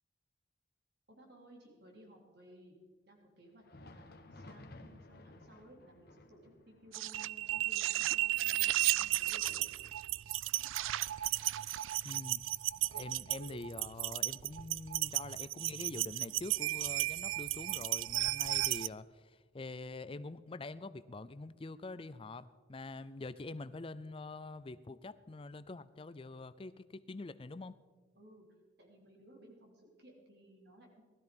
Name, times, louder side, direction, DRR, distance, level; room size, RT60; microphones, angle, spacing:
voice 1, 1.1-2.8 3.1-9.7 28.2-28.5 28.8-31.0, right 1 dB, 55° right, 0 dB, 3.5 m, -59 dB
Thunder, 3.5-12.9 13.3-13.4 14.1-14.3 15.3-15.4, left 2 dB, 50° left, 1.2 m, -58 dB
sound 1, 6.9-18.9, right 15 dB, 80° right, 0.4 m, -34 dB
voice 2, 12.0-27.8, left 2 dB, 25° left, 15 dB, 0.4 m, -45 dB
19.5 x 13.0 x 5.3 m, 1.4 s
head